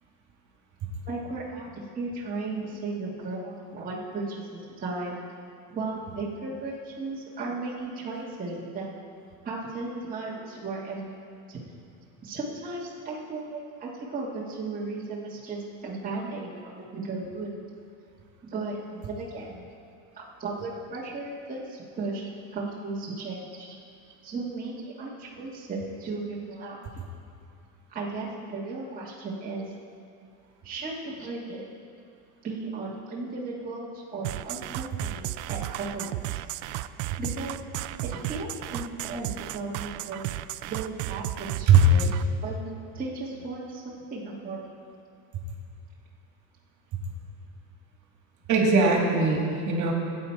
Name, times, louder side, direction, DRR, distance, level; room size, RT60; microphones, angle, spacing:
voice 1, 1.0-5.2 5.7-8.9 9.4-11.1 11.5-11.6 12.2-17.6 18.4-19.7 20.1-23.7 24.2-26.8 27.9-29.7 30.6-31.6 32.4-36.4 37.2-37.6 38.0-40.2 40.6-44.6, right 3 dB, 20° right, -6 dB, 1.5 m, -35 dB
sound 1, 34.2-42.2, right 16 dB, 70° right, 0.5 m, -34 dB
voice 2, 41.7-42.1 48.5-49.9, right 3 dB, 45° right, 0 dB, 2.2 m, -20 dB
14.5 x 8.8 x 4.4 m, 2.5 s
supercardioid pair, 130°, 41 cm